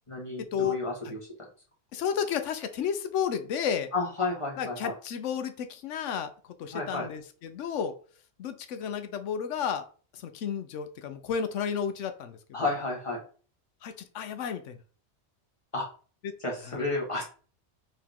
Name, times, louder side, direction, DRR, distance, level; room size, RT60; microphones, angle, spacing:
voice 1, 0.1-1.2 3.9-4.9 6.7-7.1 12.5-13.2 15.7-15.9 16.4-17.2, left 3 dB, 25° left, -2 dB, 1.5 m, -31 dB
voice 2, 1.9-3.9 4.6-6.3 6.6-7.9 8.4-9.8 10.1-12.6 13.8-14.8 16.2-16.3 16.7-16.8, left 7 dB, 85° left, 9 dB, 1.0 m, -32 dB
4.7 x 3.1 x 3.6 m, 0.39 s
omnidirectional pair, 1.2 m